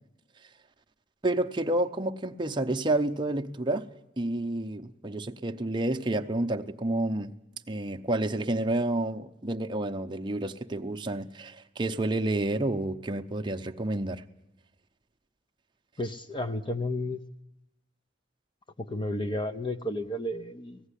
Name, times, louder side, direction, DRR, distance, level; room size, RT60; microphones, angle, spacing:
voice 1, 1.2-3.9 4.2-7.3 7.7-14.2, right 1 dB, 25° right, 0.7 m, -29 dB
voice 2, 16.0-17.2 18.8-20.8, left 1 dB, 25° left, 0.6 m, -32 dB
17.0 x 15.5 x 9.9 m
head